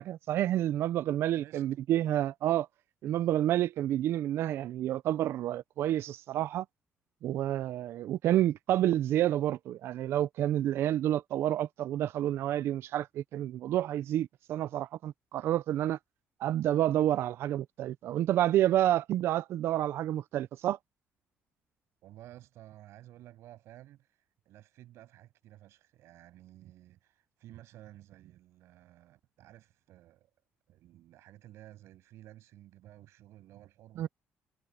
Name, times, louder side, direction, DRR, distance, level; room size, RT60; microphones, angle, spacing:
voice 1, 0.0-2.7 3.0-6.6 7.2-16.0 16.4-20.8 34.0-34.1, right 12 dB, 60° right, 0.4 m, -29 dB
voice 2, 22.0-30.3 30.7-34.1, right 14 dB, 75° right, 7.6 m, -54 dB
cardioid pair, 165°, 5 cm